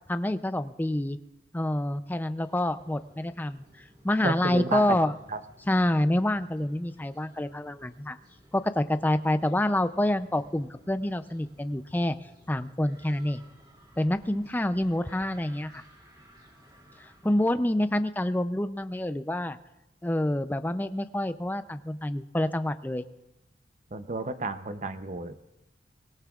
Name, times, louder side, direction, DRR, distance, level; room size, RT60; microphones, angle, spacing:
voice 1, 0.1-1.2 1.5-3.6 4.0-5.1 5.7-8.2 8.5-12.2 12.5-13.4 14.0-15.8 17.0-19.6 20.0-23.0, left 1 dB, 10° left, 11 dB, 0.4 m, -27 dB
sound 1, 2.4-17.6, equal, 25° right, 2.7 m, -57 dB
voice 2, 4.2-5.0 5.3-5.4 23.9-25.3, right 3 dB, 40° right, 10 dB, 0.7 m, -31 dB
24.0 x 19.5 x 2.4 m, 0.95 s
head